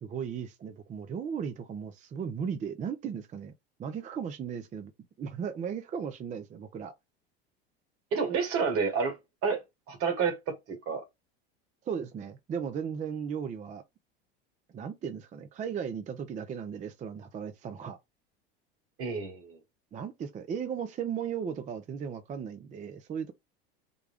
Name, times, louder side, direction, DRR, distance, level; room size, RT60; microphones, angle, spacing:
voice 1, 0.0-3.5 3.8-4.9 5.2-6.9 11.9-13.8 14.7-18.0 19.9-23.3, right 7 dB, 25° right, 0.5 m, -36 dB
voice 2, 8.1-9.6 9.9-11.0 19.0-19.6, right 5 dB, 50° right, 1.6 m, -30 dB
3.8 x 2.2 x 3.4 m
hypercardioid pair, 95°, 29 cm